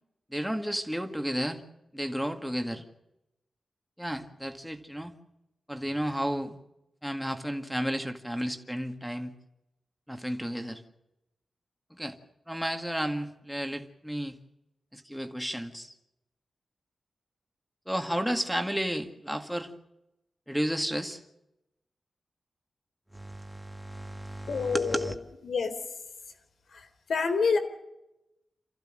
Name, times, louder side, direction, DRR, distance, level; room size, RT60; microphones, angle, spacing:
voice 1, 0.3-1.6 1.9-2.9 4.0-5.1 5.7-6.6 7.0-9.3 10.1-10.8 11.9-12.2 12.5-14.4 14.9-15.9 17.9-19.7 20.5-21.2 23.1-25.2, equal, ahead, 5 dB, 1.9 m, -32 dB
voice 2, 24.5-25.1 25.5-25.7 27.1-27.6, left 5 dB, 80° left, 7 dB, 3.6 m, -26 dB
29.0 x 15.0 x 7.6 m, 0.91 s
wide cardioid pair, 165°, 0 cm